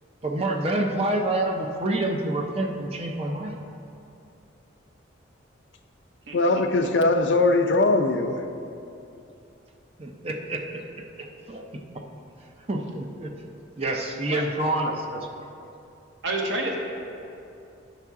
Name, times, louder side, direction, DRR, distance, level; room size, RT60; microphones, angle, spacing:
voice 1, 0.2-3.6 10.0-10.6 11.5-12.0 12.7-13.3 13.8-15.3, right 1 dB, 30° right, 2 dB, 0.5 m, -27 dB
voice 2, 6.3-8.4, left 2 dB, 60° left, 6 dB, 0.5 m, -21 dB
voice 3, 16.2-16.8, right 2 dB, 65° right, 0 dB, 0.8 m, -28 dB
9.3 x 5.8 x 3.6 m, 2.7 s
head